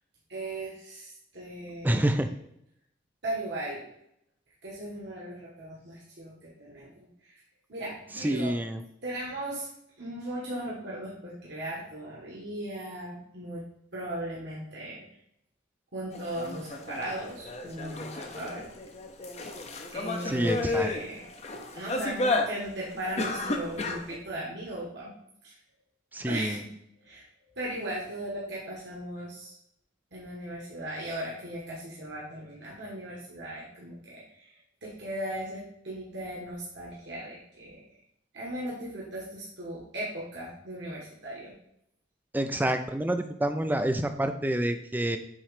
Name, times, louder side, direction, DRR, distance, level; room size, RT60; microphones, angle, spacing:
voice 1, 0.3-2.2 3.2-3.9 4.6-7.4 7.7-8.6 9.0-9.7 10.0-13.6 13.9-15.0 15.9-18.6 19.9-21.3 21.7-25.1 25.4-25.6 26.3-26.7 27.0-29.6 30.1-37.8 38.3-41.5, right 1 dB, 60° right, -5 dB, 1.5 m, -37 dB
voice 2, 1.8-2.3 8.2-8.8 20.3-20.9 26.1-26.6 42.3-45.2, right 1 dB, 10° right, 8 dB, 0.4 m, -27 dB
sound 1, 16.1-24.2, left 2 dB, 35° left, 0.6 m, -32 dB
7.3 x 3.1 x 4.9 m, 0.76 s
head